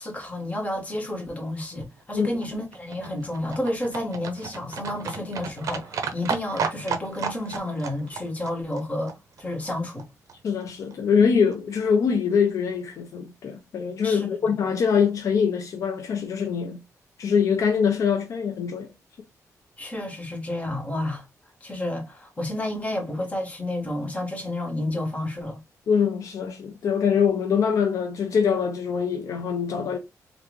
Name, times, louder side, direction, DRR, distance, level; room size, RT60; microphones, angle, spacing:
voice 1, 0.0-10.1 14.0-14.3 19.8-21.2 21.6-25.6, left 1 dB, 20° left, 1.3 m, -30 dB
Livestock farm animals working animals, 1.8-10.0 10.3-10.4 10.6-10.7 10.9-11.0 11.2-11.3 11.5-11.6 11.8-11.9 12.2-12.3 12.5-12.6, right 6 dB, 60° right, 0.6 m, -34 dB
voice 2, 10.4-16.8 17.2-18.9 25.9-30.0, left 6 dB, 60° left, 0.5 m, -23 dB
3.4 x 2.4 x 3.0 m
wide cardioid pair, 165°, 6 cm